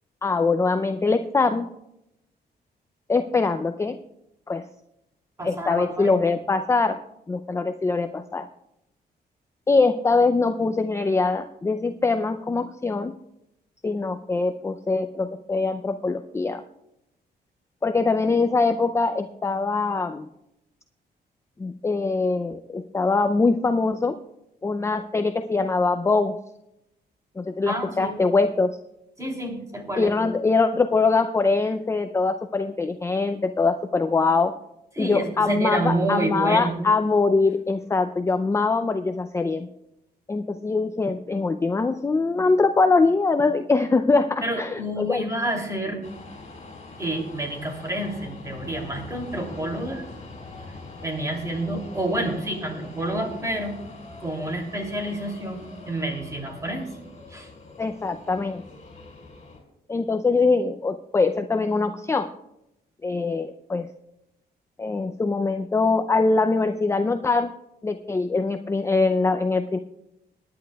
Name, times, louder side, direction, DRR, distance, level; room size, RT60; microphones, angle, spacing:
voice 1, 0.2-1.6 3.1-4.0 4.5-4.7 5.4-7.0 7.3-8.5 9.7-13.1 13.8-16.6 17.8-20.3 21.6-24.2 24.6-26.4 27.4-28.8 30.0-34.5 35.0-39.7 40.3-45.3 57.8-58.6 59.9-62.3 63.0-63.9 64.8-67.5 67.8-69.8, left 3 dB, 15° left, 7 dB, 0.4 m, -23 dB
voice 2, 5.4-6.2 27.7-28.2 29.2-30.2 34.9-36.8 44.4-46.0 47.0-50.0 51.0-53.7 54.2-56.9 57.3-57.5, right 1 dB, 20° right, 2 dB, 2.8 m, -29 dB
sound 1, 46.0-59.6, left 3 dB, 45° left, 4.7 m, -43 dB
24.0 x 10.5 x 2.3 m, 0.85 s
cardioid pair, 120°, 17 cm